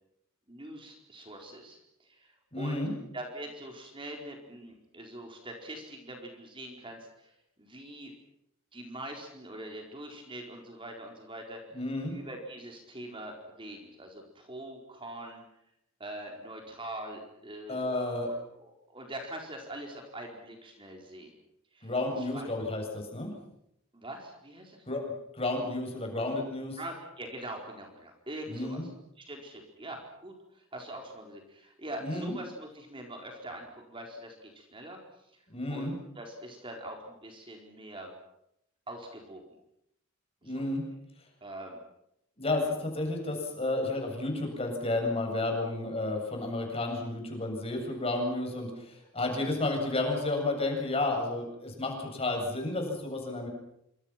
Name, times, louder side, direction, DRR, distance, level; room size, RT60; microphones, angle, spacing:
voice 1, 0.5-2.8 3.1-7.3 7.6-8.1 8.7-11.6 12.1-15.4 16.0-17.8 18.5-21.3 21.7-21.9 22.2-22.5 23.9-24.8 26.7-28.9 29.2-35.0 35.7-38.1 38.9-39.4 40.4-40.7 41.4-41.8, right 1 dB, 25° right, 2 dB, 4.5 m, -43 dB
voice 2, 2.5-2.9 11.7-12.2 17.7-18.3 21.8-23.3 24.9-25.0 25.3-26.8 28.5-28.8 32.0-32.4 35.5-35.9 40.4-40.8 42.4-53.5, left 2 dB, 30° left, 2 dB, 7.7 m, -31 dB
27.5 x 26.5 x 6.0 m, 0.78 s
head